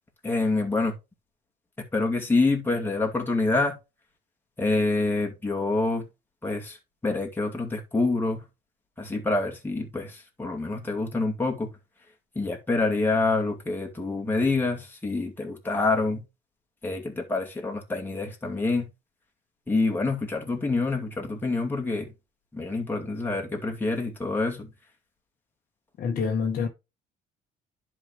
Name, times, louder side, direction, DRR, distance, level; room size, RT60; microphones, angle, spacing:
voice 1, 0.2-0.9 1.9-3.7 4.6-6.0 6.4-6.8 7.0-8.4 9.0-11.7 12.4-16.2 16.8-18.9 19.7-22.1 22.5-24.7, left 3 dB, 10° left, 2.3 m, -26 dB
voice 2, 26.0-26.7, left 5 dB, 55° left, 1.4 m, -26 dB
11.0 x 4.5 x 3.4 m
cardioid pair, 110°, 17 cm